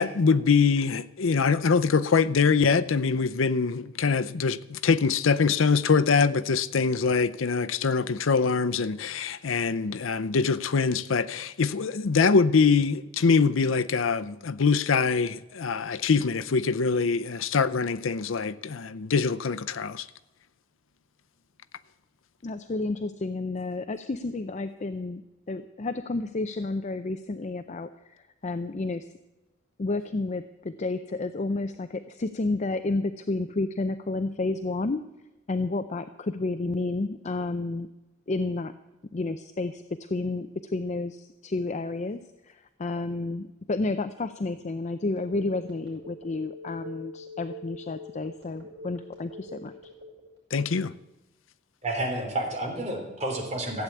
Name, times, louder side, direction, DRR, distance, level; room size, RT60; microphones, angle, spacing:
voice 1, 0.0-20.1 50.5-50.9, left 5 dB, 90° left, 0.6 m, -24 dB
voice 2, 22.4-29.1 29.8-35.0 35.5-37.9 38.3-38.7 39.1-49.9, left 2 dB, 35° left, 0.5 m, -31 dB
Telephone, 45.2-50.4, left 1 dB, 60° right, 6.3 m, -43 dB
voice 3, 51.8-53.8, right 1 dB, 35° right, 3.4 m, -30 dB
15.0 x 8.2 x 8.4 m
head